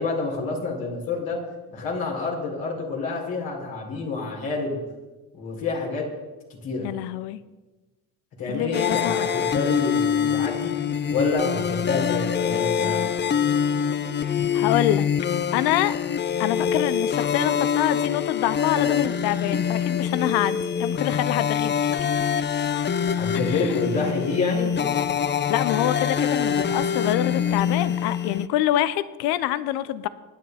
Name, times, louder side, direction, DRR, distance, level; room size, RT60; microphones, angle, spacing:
voice 1, 0.0-1.4 1.7-4.8 5.3-6.1 6.6-6.9 8.4-10.7 11.1-13.0 23.2-24.7, left 3 dB, 65° left, -2 dB, 5.5 m, -28 dB
voice 2, 6.8-7.4 8.5-9.3 14.5-15.1 15.5-15.9 16.4-22.1 23.5-23.7 25.5-30.1, left 13 dB, 85° left, 15 dB, 0.7 m, -26 dB
sound 1, 8.7-28.5, left 8 dB, 30° left, 0.6 m, -25 dB
24.5 x 10.5 x 4.2 m, 1.2 s
supercardioid pair, 85°, 37 cm